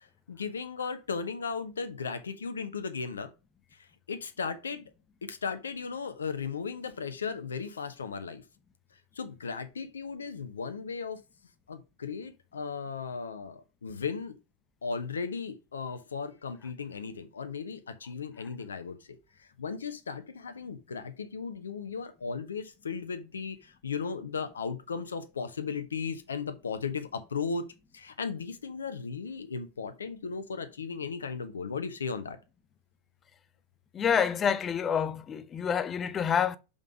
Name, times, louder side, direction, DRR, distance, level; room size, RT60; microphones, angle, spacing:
voice 1, 0.0-3.3 3.8-4.9 5.2-8.4 9.1-11.2 11.7-14.3 14.8-27.6 27.9-32.4, left 5 dB, 70° left, 1.0 m, -36 dB
voice 2, 33.9-36.6, left 7 dB, 25° left, 0.6 m, -27 dB
5.7 x 5.2 x 4.9 m
figure-of-eight pair, 90°, 0 cm